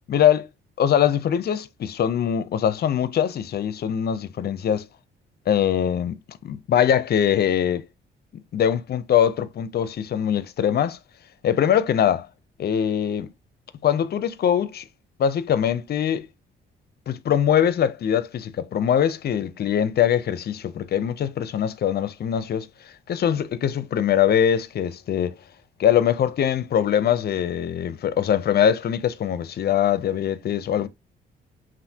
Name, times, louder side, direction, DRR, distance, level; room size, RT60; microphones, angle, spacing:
voice 1, 0.1-0.5 0.8-4.9 5.5-7.9 8.5-11.0 11.4-12.3 12.6-13.3 13.8-14.8 15.2-16.3 17.1-22.7 23.1-25.4 25.8-30.9, left 9 dB, 55° left, 0.6 m, -22 dB
5.6 x 2.5 x 2.8 m
cardioid pair, 90°, 20 cm